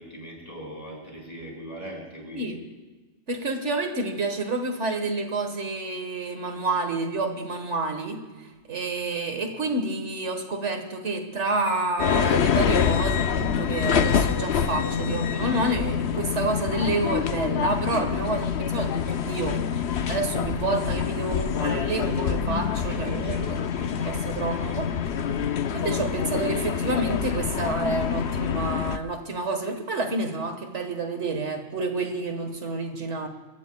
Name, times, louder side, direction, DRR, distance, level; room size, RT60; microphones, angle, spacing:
voice 1, 0.0-2.5 22.9-24.8, equal, 30° left, -2 dB, 5.7 m, -41 dB
voice 2, 3.3-19.6 20.1-23.4 24.0-24.9 25.7-33.3, right 2 dB, 80° right, 5 dB, 1.8 m, -29 dB
sound 1, 12.0-29.0, left 7 dB, 70° left, 1.0 m, -26 dB
29.5 x 15.0 x 2.3 m, 1.3 s
omnidirectional pair, 1.2 m